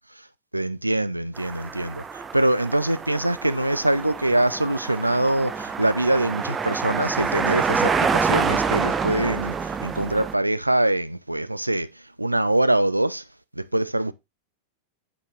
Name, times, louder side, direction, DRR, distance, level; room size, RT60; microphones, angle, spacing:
voice 1, 0.5-2.0 2.3-11.9 12.2-13.2 13.6-14.1, right 1 dB, 85° right, 0.5 m, -23 dB
sound 1, 1.4-10.3, right 5 dB, 20° right, 0.7 m, -27 dB
8.2 x 6.0 x 3.1 m
figure-of-eight pair, 90°, 0 cm